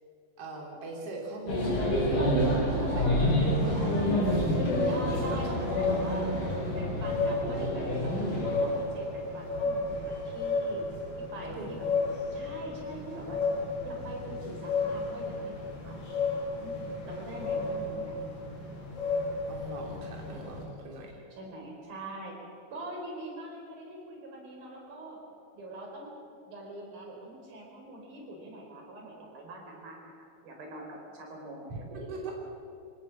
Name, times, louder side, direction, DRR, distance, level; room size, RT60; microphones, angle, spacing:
voice 1, 0.4-4.9 5.2-5.4 11.6-11.9 19.5-21.2 31.7-32.3, right 2 dB, 45° right, -1 dB, 3.9 m, -41 dB
sound 1, 1.5-8.8, equal, 70° left, 6.9 m, -28 dB
sound 2, 3.2-20.6, left 3 dB, 50° left, 5.7 m, -33 dB
voice 2, 4.8-6.3 6.7-8.2 8.4-10.8 11.3-11.9 12.3-13.4 13.9-15.5 15.8-16.0 16.6-18.3 21.4-22.4 22.7-25.2 25.5-26.1 26.5-31.7 32.0-32.3, right 2 dB, 75° right, 0 dB, 6.2 m, -43 dB
24.5 x 18.0 x 7.5 m, 2.5 s
omnidirectional pair, 4.2 m